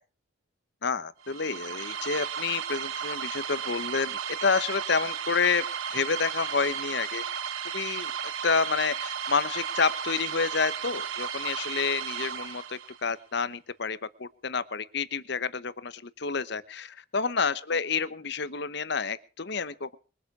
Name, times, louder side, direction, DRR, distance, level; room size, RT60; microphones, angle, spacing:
voice 1, 0.8-5.6 5.9-7.2 7.7-8.1 8.4-20.0, left 5 dB, 55° left, 15 dB, 1.0 m, -29 dB
sound 1, 1.2-13.1, right 7 dB, 85° right, 1.2 m, -34 dB
22.5 x 8.2 x 6.1 m, 0.37 s
head